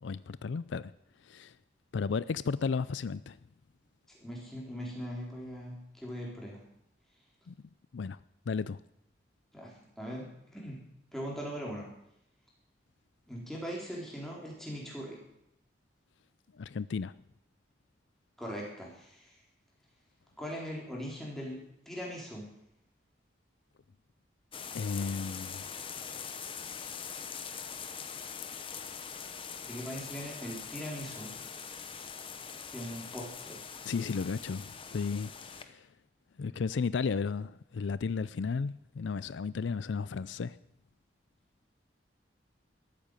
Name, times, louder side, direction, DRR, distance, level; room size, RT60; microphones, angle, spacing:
voice 1, 0.0-0.9 1.3-1.5 1.9-3.4 7.5-7.6 7.9-8.2 8.5-8.8 16.6-17.1 24.7-25.7 33.9-35.9 36.4-40.6, left 5 dB, 80° left, 17 dB, 0.4 m, -34 dB
voice 2, 4.1-6.6 9.5-10.8 11.1-11.9 13.3-15.2 18.4-19.3 20.4-22.5 29.6-31.3 32.7-33.6, equal, ahead, -3 dB, 4.0 m, -40 dB
sound 1, 24.5-35.6, left 6 dB, 30° left, 0.9 m, -43 dB
13.5 x 8.7 x 9.1 m, 0.78 s
head